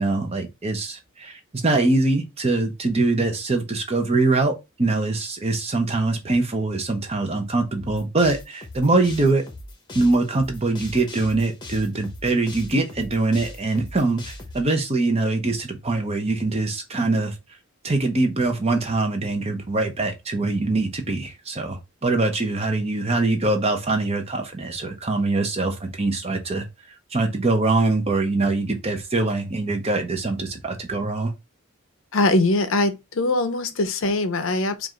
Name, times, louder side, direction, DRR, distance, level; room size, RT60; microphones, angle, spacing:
voice 1, 0.0-9.4 9.9-17.3 17.8-26.6 27.1-31.3, right 2 dB, 30° right, 0.8 m, -23 dB
sound 1, 7.8-14.6, left 2 dB, 20° left, 0.9 m, -39 dB
voice 2, 32.1-34.9, left 2 dB, 60° left, 0.6 m, -22 dB
4.7 x 2.5 x 3.6 m
head